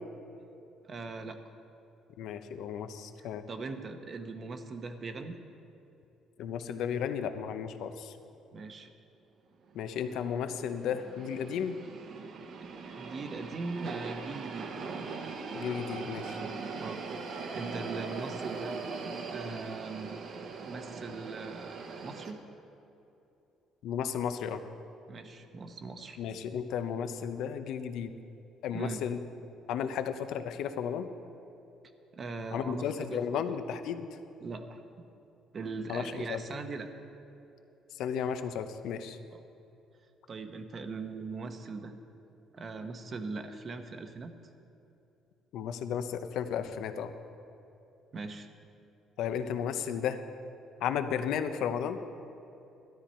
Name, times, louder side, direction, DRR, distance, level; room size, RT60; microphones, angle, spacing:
voice 1, 0.8-1.4 3.2-5.4 8.5-8.9 12.9-14.9 16.8-17.0 17.3-18.8 19.3-20.1 20.7-22.4 25.1-26.2 28.7-29.0 32.1-33.6 34.4-34.8 35.5-36.9 39.3-39.4 40.3-41.9 42.5-44.3 48.1-48.5, right 3 dB, 30° right, 7 dB, 0.8 m, -40 dB
voice 2, 2.2-3.4 6.4-8.1 9.7-11.8 15.5-16.4 23.8-24.6 26.2-28.1 28.6-29.2 29.7-31.1 32.5-34.1 35.9-36.4 38.0-39.2 45.5-47.1 49.2-50.2 50.8-52.0, left 8 dB, 70° left, 9 dB, 0.7 m, -34 dB
sound 1, 9.7-22.3, right 4 dB, 50° right, 1.0 m, -40 dB
13.0 x 13.0 x 4.4 m, 2.8 s
cardioid pair, 150°, 0 cm